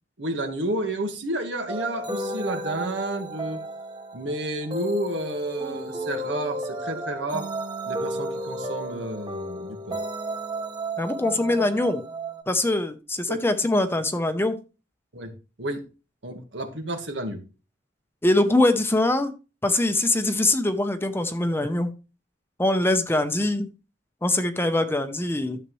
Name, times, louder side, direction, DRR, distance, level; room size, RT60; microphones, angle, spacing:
voice 1, 0.2-3.6 4.1-7.5 7.9-10.0 13.3-13.4 15.1-15.3 15.6-15.8 16.2-17.4, right 1 dB, 75° right, 6 dB, 1.7 m, -31 dB
sound 1, 1.7-12.4, right 1 dB, 25° right, 1.3 m, -33 dB
voice 2, 11.0-12.0 12.5-14.6 18.2-19.3 19.6-21.9 22.6-23.7 24.2-25.6, left 2 dB, 15° left, 9 dB, 0.7 m, -23 dB
12.5 x 7.3 x 3.1 m, 0.32 s
head